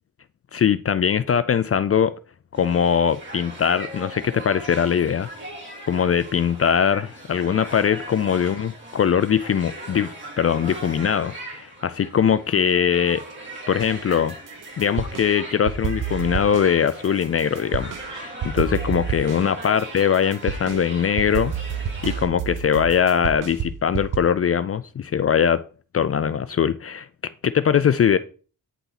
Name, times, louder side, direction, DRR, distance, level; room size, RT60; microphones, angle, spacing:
voice 1, 0.5-2.1 2.6-5.3 5.9-13.2 13.7-14.3 14.8-21.5 22.0-25.6 25.9-27.1 27.4-28.2, left 8 dB, 45° left, 0.4 m, -21 dB
sound 1, 2.5-22.3, right 1 dB, 35° right, 2.9 m, -39 dB
sound 2, 13.8-15.3 15.7-18.1 18.4-24.2, right 8 dB, 65° right, 0.7 m, -30 dB
9.2 x 4.1 x 3.9 m
cardioid pair, 80°, 34 cm